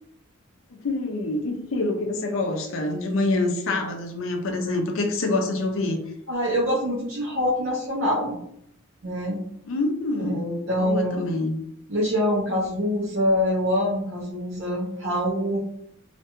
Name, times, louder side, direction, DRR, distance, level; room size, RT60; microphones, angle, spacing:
voice 1, 0.8-6.0 9.7-10.5 10.8-11.6, left 2 dB, 75° left, 3 dB, 0.5 m, -26 dB
voice 2, 6.3-8.4 9.0-9.4 10.2-11.2 11.9-15.6, equal, 65° right, -6 dB, 0.7 m, -25 dB
2.5 x 2.2 x 2.9 m, 0.75 s
head